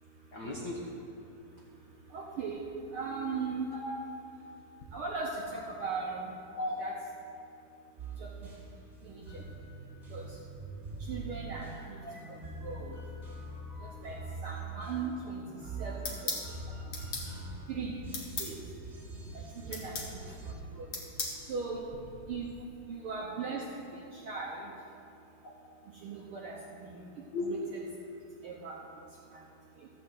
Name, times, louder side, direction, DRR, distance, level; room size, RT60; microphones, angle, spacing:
voice 1, 0.3-1.0 3.7-4.0 6.5-6.8 12.0-12.2 13.8-13.9 19.6-19.8 20.2-20.6 25.4-25.5 27.3-27.5, left 2 dB, 85° left, -3 dB, 0.8 m, -38 dB
voice 2, 2.1-2.7 2.9-3.7 4.9-6.3 6.8-6.9 8.2-8.3 9.0-9.4 10.1-10.3 11.1-12.0 12.3-13.0 13.8-15.4 15.8-16.4 17.7-18.0 18.4-18.5 19.6-20.2 20.7-20.9 21.5-21.9 22.3-22.5 22.9-23.7 24.1-24.7 26.0-27.0 27.5-27.8 28.4-28.8, right 5 dB, 75° right, -2 dB, 1.3 m, -38 dB
sound 1, 8.0-20.5, right 2 dB, 25° right, 2.0 m, -43 dB
sound 2, 16.0-16.5 16.9-17.3 18.1-18.5 19.7-20.1 20.9-21.4, left 4 dB, 50° left, 1.9 m, -36 dB
14.0 x 5.3 x 7.9 m, 2.6 s
omnidirectional pair, 3.6 m